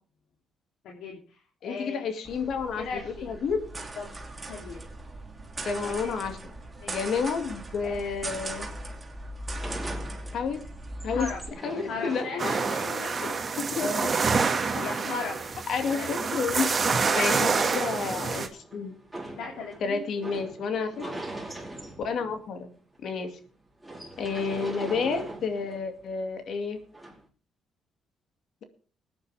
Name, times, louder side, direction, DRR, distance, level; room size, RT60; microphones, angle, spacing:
voice 1, 0.8-2.1 2.7-3.3 4.0-4.1 4.5-4.8 5.8-6.3 6.8-6.9 7.8-8.2 11.1-11.4 11.9-14.1 14.5-15.4 15.9-16.3 17.0-17.9 19.3-20.0 20.8-21.1, left 5 dB, 85° left, -1 dB, 3.0 m, -37 dB
voice 2, 1.6-3.6 5.7-6.4 6.9-8.7 10.3-10.6 11.0-11.3 11.6-12.2 13.8-14.1 14.7-14.9 15.7-16.7 17.1-18.9 19.8-21.2 22.0-22.7 23.0-23.4 24.2-26.8, left 5 dB, 65° left, 7 dB, 2.3 m, -30 dB
sound 1, 2.2-11.5, right 2 dB, 20° right, 3.0 m, -39 dB
sound 2, 9.5-10.6 10.9-22.5 22.9-23.0 23.2-23.4 23.8-26.0 26.9-27.2, right 1 dB, 5° right, 4.8 m, -41 dB
sound 3, 12.4-18.5, right 5 dB, 40° right, 1.9 m, -27 dB
20.0 x 9.9 x 3.5 m, 0.39 s
cardioid pair, 90°, 0 cm